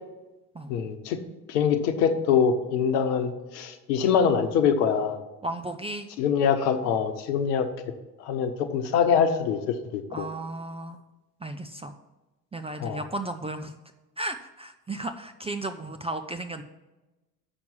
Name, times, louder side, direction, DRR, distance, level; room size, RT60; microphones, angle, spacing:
voice 1, 0.7-1.2 1.5-5.2 6.2-7.7 8.2-10.3 12.8-13.0, left 7 dB, 75° left, 9 dB, 1.0 m, -24 dB
voice 2, 5.4-6.1 10.1-11.0 11.4-12.0 12.5-13.7 14.2-16.6, right 2 dB, 15° right, 7 dB, 0.4 m, -34 dB
7.0 x 6.0 x 7.1 m, 1.1 s
hypercardioid pair, 60°, 49 cm